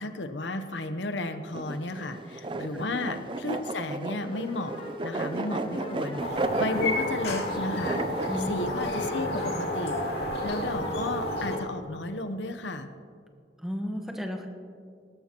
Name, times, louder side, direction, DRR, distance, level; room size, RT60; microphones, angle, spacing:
voice 1, 0.0-8.0 8.5-10.0 10.4-12.9, left 2 dB, 85° left, 9 dB, 0.8 m, -33 dB
sound 1, 1.5-8.4, right 2 dB, 30° right, 0.4 m, -33 dB
sound 2, 4.3-11.7, left 2 dB, 30° left, 1.4 m, -40 dB
sound 3, 6.2-11.6, left 1 dB, 65° left, 2.3 m, -31 dB
voice 2, 13.6-14.5, equal, ahead, 3 dB, 1.1 m, -33 dB
18.0 x 13.5 x 2.9 m, 2.2 s
head